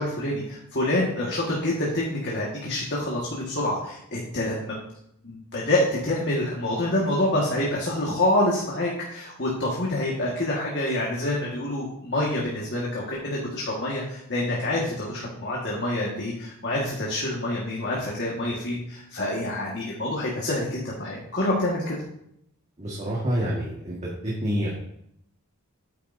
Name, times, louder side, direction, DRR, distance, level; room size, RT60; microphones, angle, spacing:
voice 1, 0.0-4.7 5.2-21.9, left 1 dB, 50° left, -4 dB, 1.7 m, -27 dB
voice 2, 22.8-24.7, equal, 30° right, -5 dB, 1.7 m, -28 dB
9.3 x 9.2 x 2.7 m, 0.74 s
head